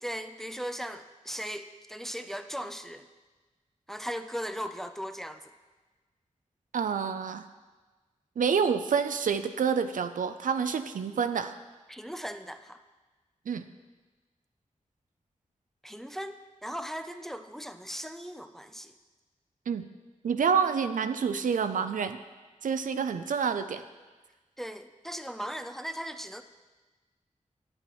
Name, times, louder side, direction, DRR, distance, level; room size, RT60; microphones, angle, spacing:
voice 1, 0.0-3.1 3.9-5.4 11.9-12.8 15.8-18.9 24.6-26.4, equal, 5° left, 9 dB, 0.4 m, -38 dB
voice 2, 6.7-7.5 8.4-11.6 13.5-13.6 19.7-19.9 20.2-22.2 22.6-23.8, right 6 dB, 90° right, 10 dB, 0.4 m, -28 dB
9.7 x 7.9 x 3.0 m, 1.3 s
wide cardioid pair, 65°, 13 cm